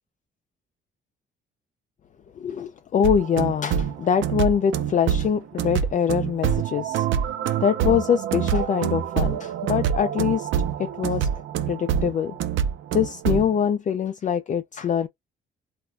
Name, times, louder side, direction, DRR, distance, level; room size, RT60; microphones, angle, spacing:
voice 1, 2.4-7.1 7.6-10.5 10.8-11.3 11.7-12.3 12.9-15.1, left 8 dB, 40° left, 0.4 m, -24 dB
sound 1, 3.0-13.5, right 8 dB, 75° right, 0.5 m, -26 dB
2.4 x 2.2 x 3.1 m
cardioid pair, 90°, 20 cm